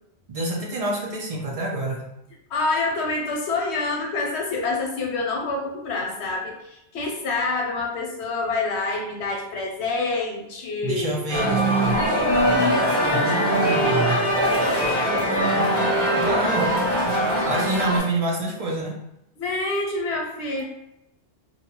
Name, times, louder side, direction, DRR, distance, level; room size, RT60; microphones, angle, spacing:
voice 1, 0.3-2.1 10.8-12.0 13.1-14.2 16.2-16.7 17.4-19.0, right 2 dB, 50° right, -1 dB, 0.5 m, -27 dB
voice 2, 2.5-11.2 19.4-20.6, left 3 dB, 90° left, 1 dB, 0.9 m, -27 dB
sound 1, 11.3-18.0, equal, 20° right, 1.5 m, -21 dB
2.6 x 2.2 x 2.8 m, 0.84 s
omnidirectional pair, 1.1 m